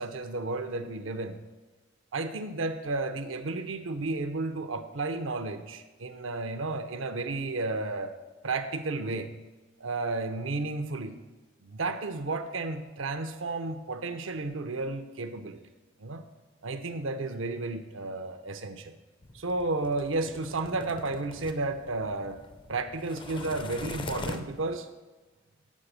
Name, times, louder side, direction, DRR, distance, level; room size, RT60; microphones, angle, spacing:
voice 1, 0.0-1.4 2.1-8.1 8.4-9.3 9.8-11.2 11.6-15.6 16.0-16.2 16.6-18.9 19.3-22.4 22.7-24.9, right 3 dB, 75° right, 8 dB, 0.7 m, -32 dB
sound 1, 19.2-24.8, left 2 dB, 25° left, 0.4 m, -42 dB
7.4 x 4.9 x 6.7 m, 1.2 s
head